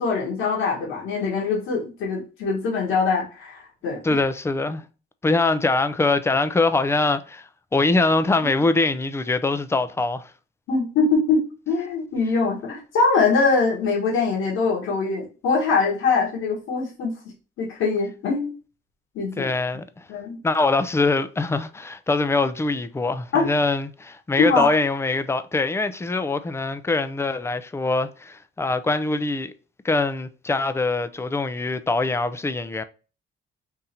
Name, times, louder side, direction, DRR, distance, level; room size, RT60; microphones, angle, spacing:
voice 1, 0.0-4.2 10.7-17.1 17.6-18.5 19.1-19.5 20.1-20.4 23.3-23.5 24.4-24.7, left 4 dB, 85° left, 1.6 m, -23 dB
voice 2, 4.0-4.8 5.2-10.2 19.4-20.0 20.4-29.5 29.8-32.8, left 3 dB, 15° left, 0.5 m, -23 dB
3.7 x 2.8 x 4.2 m
cardioid pair, 90°, 20 cm